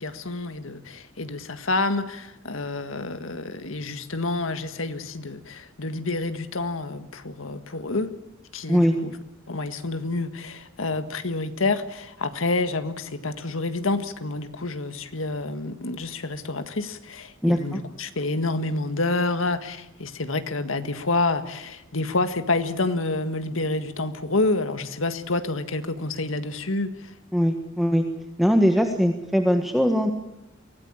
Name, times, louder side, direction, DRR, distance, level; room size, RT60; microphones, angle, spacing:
voice 1, 0.0-8.1 8.5-9.1 9.5-27.1, left 2 dB, 80° left, 10 dB, 1.8 m, -28 dB
voice 2, 17.4-17.8 27.3-28.0 28.4-30.1, equal, ahead, 5 dB, 1.5 m, -21 dB
24.0 x 17.5 x 8.8 m, 0.93 s
head